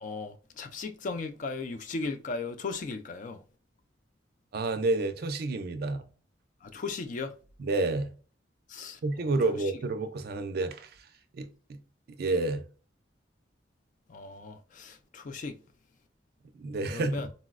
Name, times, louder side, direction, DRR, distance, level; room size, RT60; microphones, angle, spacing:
voice 1, 0.0-3.4 6.7-7.3 8.7-9.3 14.1-15.5 16.9-17.3, left 4 dB, 45° left, 0.3 m, -37 dB
voice 2, 4.5-6.1 7.6-8.1 9.0-10.9 11.3-11.8 12.1-12.6 16.5-17.2, right 2 dB, 55° right, 0.4 m, -29 dB
3.9 x 2.0 x 2.4 m
head